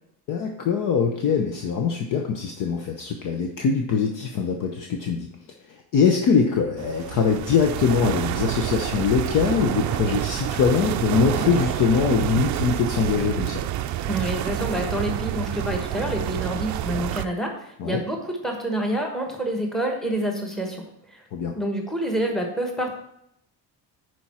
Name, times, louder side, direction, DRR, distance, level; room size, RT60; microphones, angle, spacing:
voice 1, 0.3-5.3 5.7-13.6 17.8-18.0 21.3-21.6, left 6 dB, 55° left, 3 dB, 0.9 m, -23 dB
sound 1, 6.8-17.3, right 12 dB, 50° right, 0.5 m, -28 dB
voice 2, 14.1-20.8 21.1-21.2 21.6-22.9, right 1 dB, ahead, 2 dB, 1.1 m, -27 dB
11.0 x 4.6 x 4.3 m, 0.74 s
cardioid pair, 165°, 38 cm